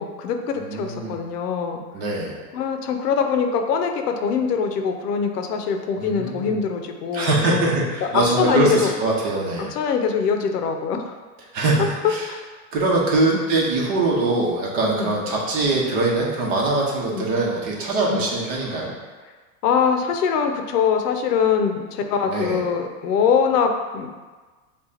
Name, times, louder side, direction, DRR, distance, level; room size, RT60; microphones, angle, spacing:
voice 1, 0.0-1.8 2.5-7.9 8.1-8.9 9.6-11.1 12.3-12.4 13.3-13.4 14.9-15.1 17.1-17.3 18.1-18.2 19.6-24.1, left 6 dB, 85° left, 5 dB, 0.7 m, -23 dB
voice 2, 0.6-1.2 1.9-2.3 6.0-6.6 7.1-9.7 11.5-12.3 12.7-18.9 22.3-22.6, right 2 dB, 40° right, -3 dB, 1.1 m, -22 dB
7.1 x 2.4 x 2.8 m, 1.4 s
supercardioid pair, 160°, 46 cm